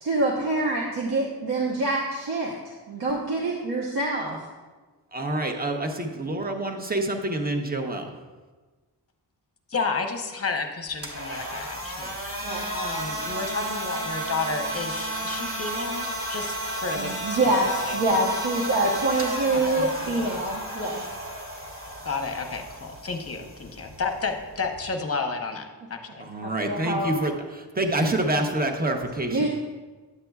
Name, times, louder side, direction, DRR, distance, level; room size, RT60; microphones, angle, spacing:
voice 1, 0.0-2.6 2.9-4.4 12.4-12.7 16.9-21.1 26.4-27.1 29.3-29.5, right 2 dB, 65° right, -3 dB, 1.0 m, -26 dB
voice 2, 5.1-8.1 26.2-29.5, right 1 dB, 20° right, 4 dB, 0.8 m, -27 dB
voice 3, 9.7-12.2 12.7-16.5 16.8-18.0 19.7-20.1 22.0-26.0, left 4 dB, 35° left, 5 dB, 0.8 m, -31 dB
sound 1, 10.9-24.9, right 1 dB, 45° right, 1.7 m, -33 dB
9.7 x 7.6 x 2.3 m, 1.3 s
wide cardioid pair, 100°, 42 cm